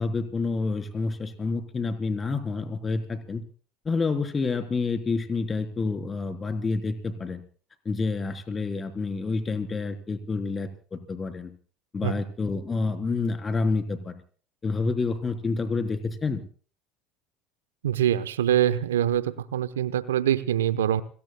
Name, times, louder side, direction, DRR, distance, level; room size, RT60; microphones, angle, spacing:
voice 1, 0.0-3.4 3.8-7.4 7.9-11.5 11.9-14.2 14.6-16.4, left 4 dB, 25° left, 8 dB, 3.9 m, -28 dB
voice 2, 17.8-21.0, right 10 dB, 85° right, 14 dB, 1.0 m, -24 dB
30.0 x 19.0 x 2.3 m, 0.42 s
hypercardioid pair, 75°, 0 cm